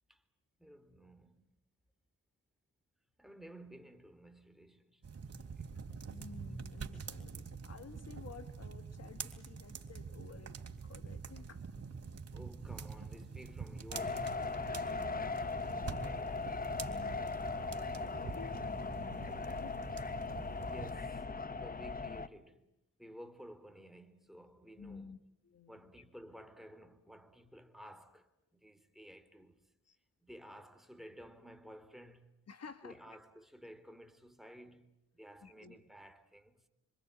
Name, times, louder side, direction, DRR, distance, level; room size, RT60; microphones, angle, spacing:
voice 1, 0.6-1.5 3.2-5.0 5.5-5.7 12.3-14.4 14.7-16.5 20.6-22.6 23.0-25.2 25.7-28.3 28.6-29.6 30.2-32.3 32.8-36.6, equal, ahead, 3.2 m, -54 dB
sound 1, 5.0-20.9, right 5 dB, 50° right, 3.4 m, -46 dB
voice 2, 6.1-11.6 16.8-19.7 24.8-25.2 25.4-25.9 29.9-30.0 32.5-33.0 35.4-35.8, left 6 dB, 55° left, 1.7 m, -53 dB
sound 2, 13.9-22.3, left 4 dB, 30° left, 1.1 m, -39 dB
26.5 x 25.5 x 8.7 m
cardioid pair, 80°, 30 cm